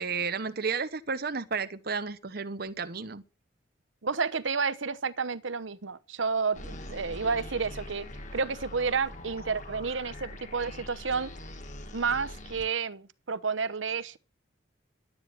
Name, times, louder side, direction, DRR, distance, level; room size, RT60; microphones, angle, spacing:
voice 1, 0.0-3.2, right 5 dB, 55° right, 1.0 m, -32 dB
voice 2, 4.0-8.1 8.3-11.3 11.9-14.2, right 5 dB, 85° right, 0.9 m, -30 dB
sound 1, 6.5-12.7, left 1 dB, 40° left, 2.0 m, -43 dB
11.5 x 9.5 x 7.5 m
head